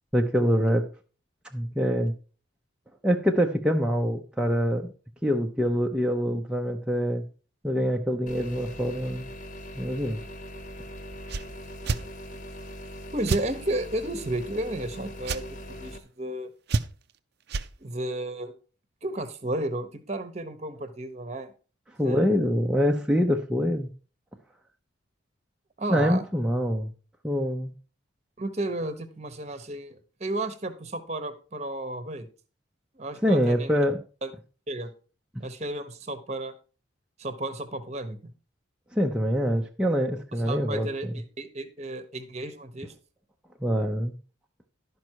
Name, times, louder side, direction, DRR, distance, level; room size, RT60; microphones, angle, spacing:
voice 1, 0.1-0.9 1.5-2.1 3.0-4.9 5.2-7.2 7.6-9.3 9.8-10.2 22.0-23.9 25.9-26.9 27.2-27.7 33.2-34.0 38.9-40.9 43.6-44.1, equal, 5° right, 1 dB, 0.6 m, -25 dB
sound 1, 8.3-16.0, equal, 40° left, 1.2 m, -41 dB
sound 2, 11.3-11.5 11.8-12.0 13.3-13.5 15.2-15.4 16.7-17.1 17.5-17.7, right 4 dB, 55° right, 0.5 m, -27 dB
voice 2, 13.1-16.5 17.8-18.5 19.0-21.5 22.0-22.4 25.8-26.2 28.4-32.3 32.9-33.8 34.2-34.3 34.7-34.9 35.4-36.5 37.2-38.3 40.4-42.9, right 1 dB, 35° right, 11 dB, 0.9 m, -33 dB
12.0 x 5.3 x 4.6 m, 0.37 s
head